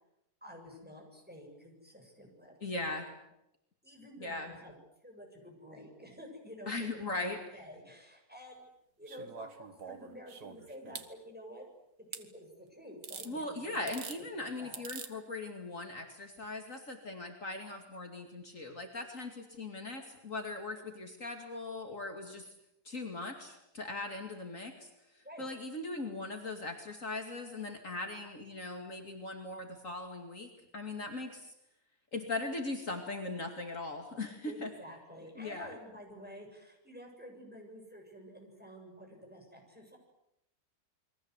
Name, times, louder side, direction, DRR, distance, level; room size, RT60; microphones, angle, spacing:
voice 1, 0.4-2.6 3.8-4.7 5.0-8.7 9.0-11.7 12.0-14.0 14.4-14.8 25.2-25.5 34.4-40.0, equal, 5° right, 1 dB, 7.4 m, -50 dB
voice 2, 2.6-3.1 4.2-4.5 6.7-7.4 13.2-22.5 22.8-31.5 32.1-34.7 35.4-35.7, left 2 dB, 50° left, 3 dB, 2.9 m, -39 dB
sound 1, 9.1-11.1 12.1-12.2 13.0-13.3 13.7-14.2 14.7-15.1 16.4-16.5, right 6 dB, 85° right, 2.2 m, -45 dB
29.0 x 22.5 x 8.2 m, 0.85 s
omnidirectional pair, 1.7 m